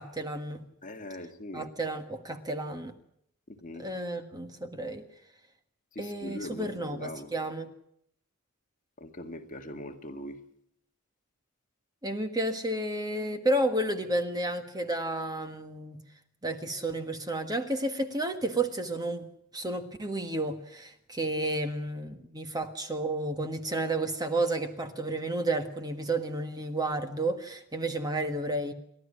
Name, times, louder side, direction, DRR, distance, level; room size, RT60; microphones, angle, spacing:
voice 1, 0.0-0.6 1.5-2.9 3.8-5.1 6.0-7.7 12.0-16.0 16.4-19.3 19.5-28.7, right 2 dB, 20° right, 1.6 m, -31 dB
voice 2, 0.8-1.7 3.5-3.9 6.0-7.3 9.0-10.4, left 1 dB, 35° left, 2.0 m, -41 dB
29.5 x 12.5 x 10.0 m
head